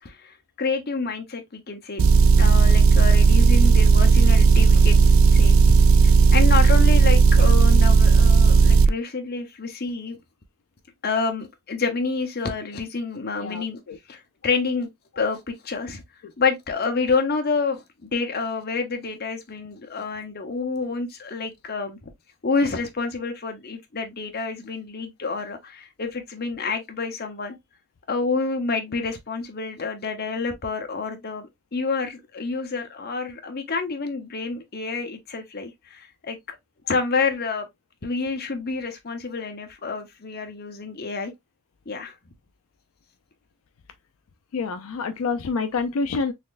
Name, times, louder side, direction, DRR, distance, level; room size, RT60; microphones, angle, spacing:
voice 1, 0.0-2.0 2.4-5.5 6.3-10.2 11.0-13.8 14.1-14.9 15.1-16.0 16.4-22.1 22.4-27.5 28.1-36.6 36.9-37.7 38.0-41.3 41.9-42.1, left 4 dB, 45° left, 0.8 m, -28 dB
Motor vehicle (road) / Engine, 2.0-8.9, right 5 dB, 65° right, 0.4 m, -14 dB
voice 2, 13.4-14.0 44.5-46.3, left 4 dB, 75° left, 0.4 m, -27 dB
4.1 x 3.1 x 2.5 m
head